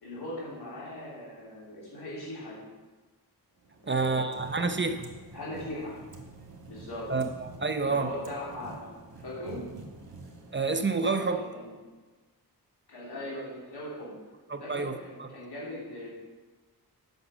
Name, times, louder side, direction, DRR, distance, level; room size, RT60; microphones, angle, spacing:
voice 1, 0.0-2.6 3.8-4.8 5.3-5.9 6.7-7.1 7.8-8.9 9.2-9.6 11.0-11.8 12.9-14.1 14.6-16.1, left 1 dB, 85° left, 3.5 m, -40 dB
sound 1, 3.6-11.8, right 3 dB, 65° right, 1.6 m, -49 dB
voice 2, 3.9-5.1 7.1-8.1 10.5-11.4 14.5-15.3, right 4 dB, 30° right, 0.7 m, -29 dB
7.9 x 6.1 x 6.5 m
cardioid pair, 65°, 39 cm